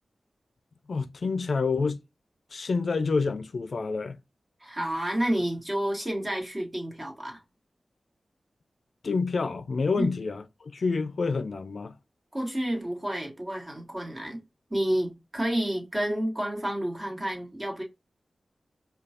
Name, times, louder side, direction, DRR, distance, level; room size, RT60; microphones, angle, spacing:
voice 1, 0.9-2.0 2.5-4.2 9.0-10.4 10.7-11.9, left 4 dB, 70° left, 0.4 m, -28 dB
voice 2, 4.6-7.4 10.0-10.1 12.3-14.4 14.7-17.8, right 1 dB, 25° right, 1.7 m, -30 dB
5.1 x 2.3 x 2.8 m
wide cardioid pair, 80°, 0 cm